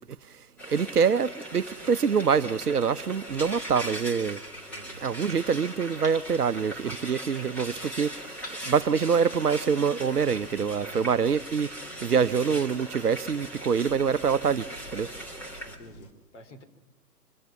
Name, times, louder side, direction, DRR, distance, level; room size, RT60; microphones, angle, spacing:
voice 1, 0.1-4.4 5.0-8.3 8.6-11.7 12.0-15.1, right 6 dB, 70° right, 0.8 m, -25 dB
Frying (food), 0.6-15.8, right 1 dB, 5° left, 1.2 m, -40 dB
sound 1, 1.7-16.1, left 2 dB, 25° left, 2.6 m, -55 dB
voice 2, 4.7-5.0 10.8-11.1 15.6-16.6, right 1 dB, 45° left, 3.0 m, -48 dB
sound 2, 5.9-7.5 8.3-9.9, left 1 dB, 75° left, 6.7 m, -51 dB
24.5 x 19.5 x 5.8 m
figure-of-eight pair, 135°, 48 cm